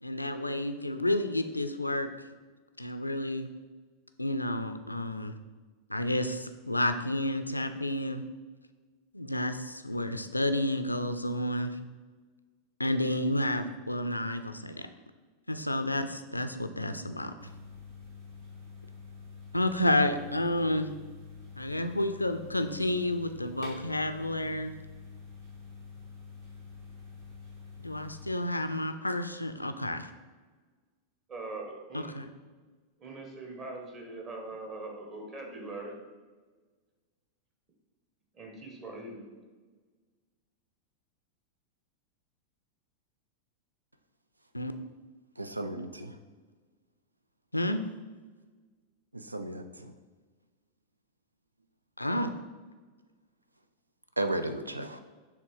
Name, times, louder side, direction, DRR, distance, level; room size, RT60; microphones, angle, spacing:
voice 1, 0.0-2.3 2.8-3.5 4.2-5.3 5.9-8.2 9.1-11.8 12.8-14.9 15.5-17.3 19.5-20.9 21.6-24.7 27.8-30.1 31.9-32.3 44.5-44.7 47.5-47.8 52.0-52.3, left 1 dB, 85° left, 9 dB, 0.4 m, -30 dB
sound 1, 17.4-28.3, left 5 dB, 50° right, 1.8 m, -47 dB
voice 2, 31.3-32.1 33.0-36.0 38.3-39.2, right 2 dB, 30° right, 1 dB, 1.4 m, -41 dB
voice 3, 45.4-46.2 49.1-49.9 54.2-55.0, right 1 dB, 85° right, 9 dB, 0.4 m, -34 dB
7.0 x 3.4 x 4.7 m, 1.4 s
figure-of-eight pair, 90°, 0 cm